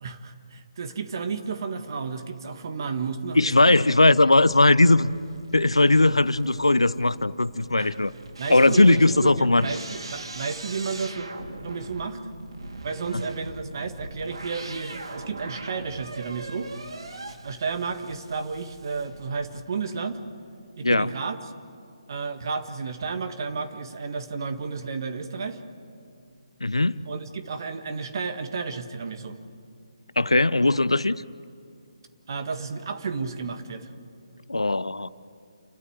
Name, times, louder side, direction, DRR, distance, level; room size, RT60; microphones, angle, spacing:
voice 1, 0.0-3.8 7.8-7.9 8.4-11.3 11.6-12.2 12.8-16.7 17.4-20.2 20.8-21.4 22.1-25.6 27.1-29.4 32.3-33.9, right 5 dB, 45° right, 8 dB, 1.7 m, -32 dB
voice 2, 3.3-5.1 5.5-8.1 8.5-9.7 13.1-13.2 20.8-21.1 26.6-27.0 30.2-31.2 34.5-35.1, left 2 dB, 80° left, 18 dB, 0.6 m, -19 dB
sound 1, 4.1-19.6, right 2 dB, 65° right, 2.0 m, -41 dB
30.0 x 12.5 x 8.0 m, 2.4 s
figure-of-eight pair, 145°, 3 cm